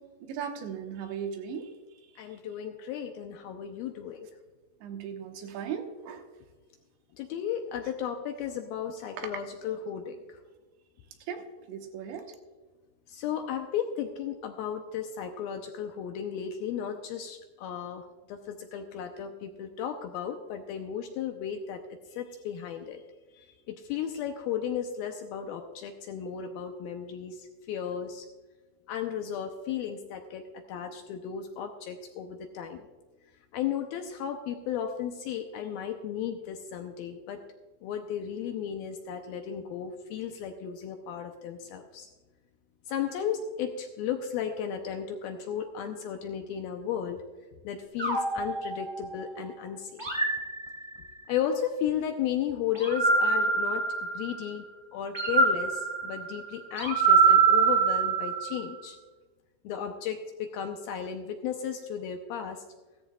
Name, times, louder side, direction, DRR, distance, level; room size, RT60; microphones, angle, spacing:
voice 1, 0.2-1.7 4.8-6.2 9.2-9.3 11.3-12.3, right 7 dB, 90° right, 4 dB, 3.4 m, -37 dB
voice 2, 2.2-4.3 7.1-10.4 13.1-21.8 22.1-23.0 23.3-28.3 28.9-30.4 30.7-32.9 33.5-37.4 37.8-42.1 42.9-47.2 47.6-50.1 51.3-53.8 54.1-54.7 54.9-59.0 59.6-62.6, left 8 dB, 80° left, 5 dB, 2.2 m, -34 dB
sound 1, 48.0-49.4 50.0-51.3 52.7-54.5 55.1-58.7, right 5 dB, 20° right, 0.6 m, -25 dB
16.0 x 14.0 x 2.3 m, 1.3 s
omnidirectional pair, 4.9 m